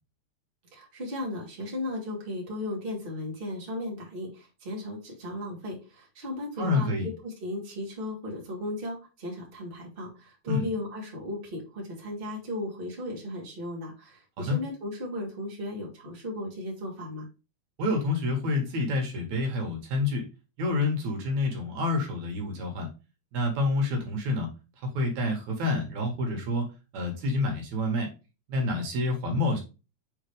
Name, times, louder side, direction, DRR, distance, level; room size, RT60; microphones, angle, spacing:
voice 1, 0.7-17.3, left 1 dB, 20° right, -2 dB, 2.2 m, -36 dB
voice 2, 6.6-7.1 10.5-10.6 14.4-14.6 17.8-20.3 20.6-22.9 23.3-24.5 24.8-26.7 26.9-28.1 28.5-29.6, left 2 dB, 70° right, 2 dB, 2.8 m, -28 dB
7.0 x 4.0 x 3.4 m, 0.30 s
omnidirectional pair, 3.5 m